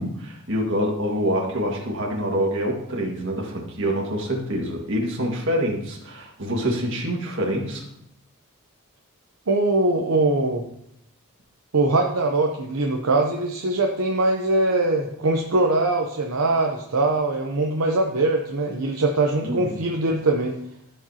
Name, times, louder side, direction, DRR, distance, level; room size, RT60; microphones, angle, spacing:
voice 1, 0.0-7.8 19.4-19.8, equal, 60° right, -1 dB, 1.9 m, -26 dB
voice 2, 9.5-10.6 11.7-20.5, right 2 dB, 85° right, 1 dB, 0.8 m, -22 dB
14.0 x 5.2 x 2.9 m, 0.77 s
head